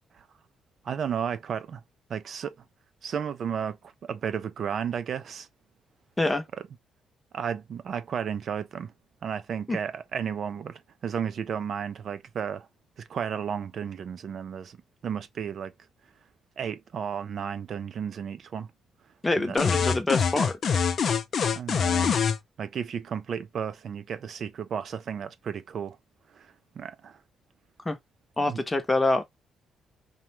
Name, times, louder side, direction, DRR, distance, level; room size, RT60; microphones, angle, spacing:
voice 1, 0.9-1.8 2.1-2.5 3.0-3.8 4.0-5.5 7.3-8.9 9.2-12.7 13.1-14.8 15.0-15.7 16.6-18.7 19.4-19.7 21.5-22.2 22.6-26.0 26.4-26.5 26.8-27.2 28.5-28.6, right 7 dB, 60° right, 0.3 m, -33 dB
voice 2, 19.2-20.6 27.8-28.0 28.4-29.2, left 2 dB, 20° left, 0.7 m, -25 dB
sound 1, 19.6-22.4, left 6 dB, 55° left, 0.4 m, -24 dB
2.4 x 2.2 x 2.9 m
cardioid pair, 90°, 0 cm